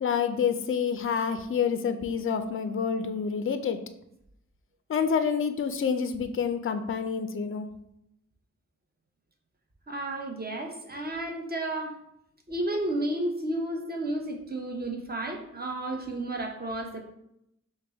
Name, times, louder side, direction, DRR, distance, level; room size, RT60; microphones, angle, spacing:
voice 1, 0.0-3.8 4.9-7.7, left 6 dB, 40° left, 8 dB, 0.4 m, -28 dB
voice 2, 9.9-12.0 12.5-17.0, right 1 dB, 30° right, 2 dB, 0.8 m, -32 dB
4.8 x 2.2 x 3.4 m, 0.79 s
cardioid pair, 45°, 32 cm